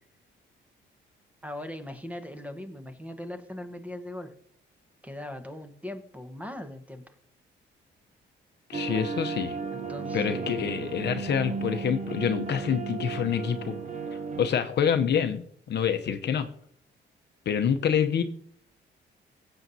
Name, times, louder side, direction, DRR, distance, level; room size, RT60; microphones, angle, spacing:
voice 1, 1.4-4.3 5.0-7.1 9.7-11.1, left 1 dB, 5° right, 8 dB, 1.2 m, -40 dB
voice 2, 8.7-9.6 10.1-13.7 14.4-16.5 17.5-18.2, left 8 dB, 60° left, 7 dB, 0.8 m, -27 dB
sound 1, 8.7-14.5, right 5 dB, 35° right, 0.9 m, -34 dB
17.0 x 7.8 x 2.8 m, 0.63 s
cardioid pair, 90°, 20 cm